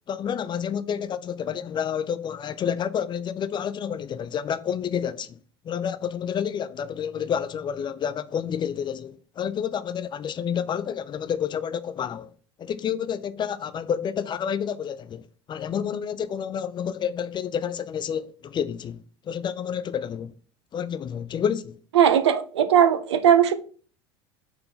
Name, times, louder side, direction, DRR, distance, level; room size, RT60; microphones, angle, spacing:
voice 1, 0.1-5.4 5.6-12.3 12.6-20.3 20.7-21.8, left 8 dB, 35° left, 0.5 m, -29 dB
voice 2, 22.0-23.5, right 9 dB, 80° right, 0.6 m, -18 dB
4.6 x 3.8 x 5.5 m
hypercardioid pair, 75°, 14 cm